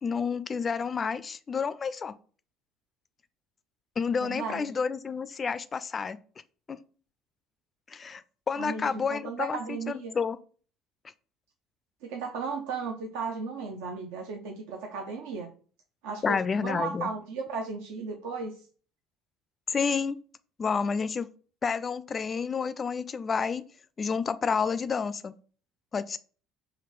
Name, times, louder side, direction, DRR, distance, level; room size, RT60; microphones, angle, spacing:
voice 1, 0.0-2.1 4.0-6.2 6.7-6.8 7.9-8.2 8.5-10.4 16.2-17.1 19.7-20.2 20.6-21.3 21.6-23.6 24.0-25.3 25.9-26.2, left 5 dB, 35° left, 0.3 m, -29 dB
voice 2, 4.2-4.7 8.6-10.2 12.0-15.5 16.0-18.5, right 4 dB, 70° right, 0.5 m, -35 dB
5.0 x 2.8 x 3.0 m
hypercardioid pair, 60°, 0 cm